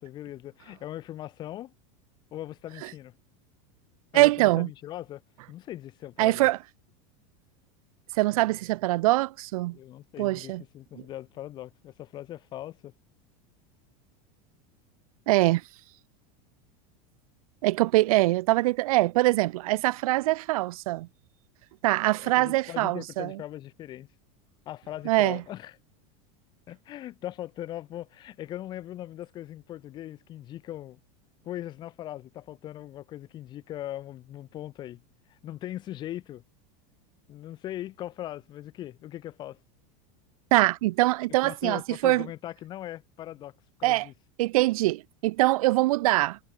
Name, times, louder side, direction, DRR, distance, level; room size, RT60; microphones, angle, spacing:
voice 1, 0.0-1.7 2.3-3.1 4.1-5.2 5.5-6.5 9.7-12.9 22.2-24.1 24.7-25.8 26.7-31.0 31.4-35.0 35.3-36.4 37.3-39.6 41.4-43.5 43.8-44.1, left 13 dB, 25° left, 2.2 m, -40 dB
voice 2, 4.1-4.7 6.2-6.6 8.2-9.8 10.2-10.6 15.3-15.6 17.6-21.1 21.8-23.4 25.1-25.4 40.5-42.3 43.8-44.1 44.4-46.4, right 19 dB, 85° right, 0.4 m, -23 dB
supercardioid pair, 180°, 18 cm